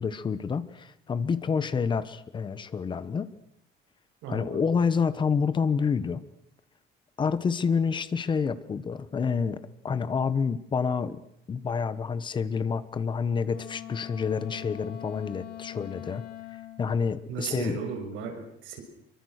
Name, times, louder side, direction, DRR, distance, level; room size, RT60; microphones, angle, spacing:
voice 1, 0.0-3.3 4.3-6.2 7.2-9.6 9.8-11.2 11.5-16.2 16.8-17.8, left 5 dB, 25° left, 14 dB, 1.1 m, -28 dB
voice 2, 4.2-4.8 17.3-18.8, right 6 dB, 75° right, 4 dB, 6.3 m, -36 dB
Wind instrument woodwind instrument, 13.4-16.9, left 13 dB, 45° left, 2.6 m, -42 dB
25.5 x 23.5 x 6.6 m, 0.73 s
cardioid pair, 175°, 20 cm